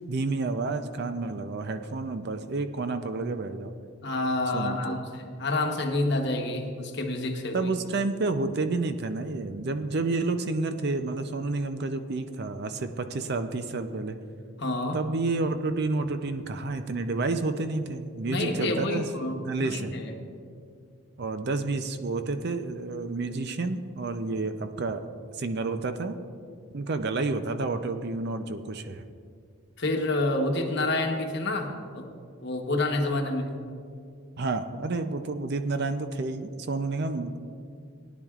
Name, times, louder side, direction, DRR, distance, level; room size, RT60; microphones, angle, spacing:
voice 1, 0.1-3.7 4.5-5.0 7.5-14.2 14.9-19.0 19.4-19.9 21.2-25.0 25.3-26.2 26.7-29.0 34.4-37.4, right 3 dB, 50° right, 8 dB, 0.5 m, -30 dB
voice 2, 4.0-7.7 14.6-15.0 18.2-20.0 29.8-32.1 32.4-33.5, left 2 dB, 50° left, 3 dB, 1.1 m, -28 dB
17.5 x 10.0 x 2.4 m, 2.3 s
head